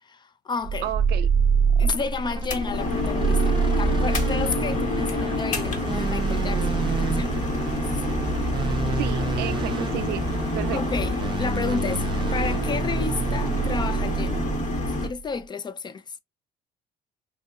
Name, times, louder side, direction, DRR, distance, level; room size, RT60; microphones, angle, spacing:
voice 1, 0.0-0.9 1.8-7.4 7.8-8.0 8.7-8.8 10.7-12.1 12.3-14.4 14.9-16.2, left 5 dB, 25° left, 0.3 m, -32 dB
sound 1, 0.6-15.2, right 5 dB, 30° right, 0.5 m, -26 dB
voice 2, 0.8-1.3 8.9-10.2 10.5-10.8, right 12 dB, 75° right, 0.5 m, -32 dB
sound 2, 2.4-15.1, left 3 dB, 45° left, 0.9 m, -29 dB
sound 3, 3.6-14.5, left 1 dB, 10° right, 0.9 m, -42 dB
3.7 x 2.8 x 2.3 m
cardioid pair, 110°, 17 cm